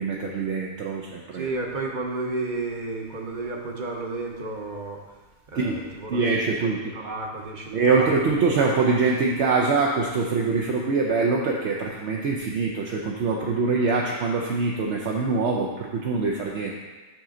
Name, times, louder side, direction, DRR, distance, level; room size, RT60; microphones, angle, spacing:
voice 1, 0.0-1.5 5.5-6.9 7.7-16.8, right 4 dB, 70° right, -1 dB, 1.0 m, -24 dB
voice 2, 1.3-5.0 5.5-6.3 6.6-8.2, right 3 dB, 45° right, 1 dB, 1.0 m, -32 dB
7.6 x 6.2 x 3.8 m, 1.3 s
omnidirectional pair, 1.2 m